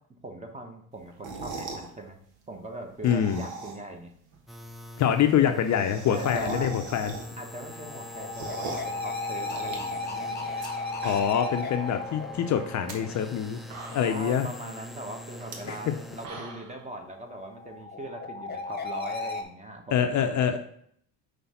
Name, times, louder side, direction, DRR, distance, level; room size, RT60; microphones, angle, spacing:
voice 1, 0.2-2.2 2.5-4.1 6.1-6.7 7.4-10.4 13.9-20.6, right 1 dB, 15° right, 4 dB, 1.2 m, -40 dB
sound 1, 1.1-1.9 2.9-4.0 4.3-4.4 4.6-4.7 4.9-5.0 5.3-7.5 7.9-9.0 9.4-10.7 10.9-11.5 11.9-12.0 12.7-12.9 13.4-13.5 13.7-14.3 15.4-15.5 16.0-16.8, right 3 dB, 75° right, 1.3 m, -39 dB
voice 2, 3.0-3.4 5.0-7.1 11.0-13.6 13.9-14.5 15.7-15.8 19.9-20.6, left 9 dB, 45° left, 7 dB, 0.6 m, -25 dB
sound 2, 4.5-16.3, left 1 dB, ahead, 0.5 m, -44 dB
sound 3, 7.5-13.5 17.0-19.4, left 3 dB, 25° left, 1.0 m, -35 dB
5.6 x 3.3 x 5.6 m, 0.65 s
supercardioid pair, 80°, 41 cm